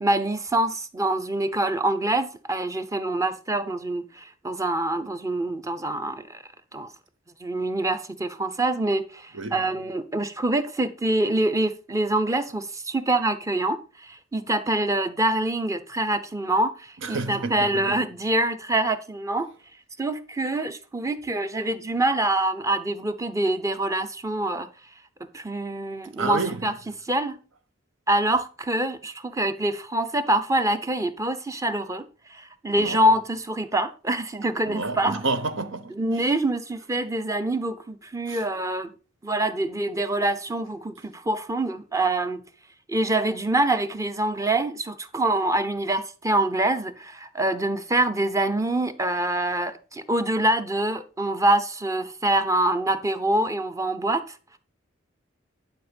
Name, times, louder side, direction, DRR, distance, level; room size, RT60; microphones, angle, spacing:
voice 1, 0.0-6.4 6.7-6.9 7.4-19.5 20.0-24.7 25.3-26.7 27.1-27.4 28.1-32.0 32.3-35.2 36.0-38.9 39.2-42.4 42.9-54.3, right 1 dB, 15° right, 0.8 m, -25 dB
voice 2, 17.0-18.0 26.2-26.7 32.8-33.0 34.7-36.0 38.3-38.4, right 3 dB, 70° right, 0.9 m, -29 dB
11.0 x 5.1 x 5.2 m
head